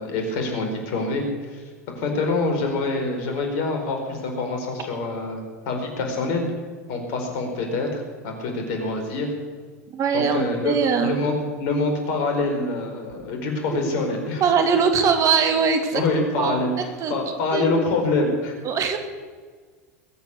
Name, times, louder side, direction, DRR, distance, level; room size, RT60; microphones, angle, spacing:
voice 1, 0.0-1.6 1.9-6.5 6.9-9.3 10.1-10.8 11.0-14.4 15.9-16.7 17.1-18.6, left 3 dB, 60° left, 3 dB, 4.7 m, -25 dB
voice 2, 9.9-11.2 13.7-13.8 14.4-16.6 17.0-17.1 17.5-17.7 18.6-19.0, right 6 dB, 40° right, 6 dB, 2.4 m, -21 dB
21.5 x 9.0 x 6.8 m, 1.5 s
hypercardioid pair, 85°, 8 cm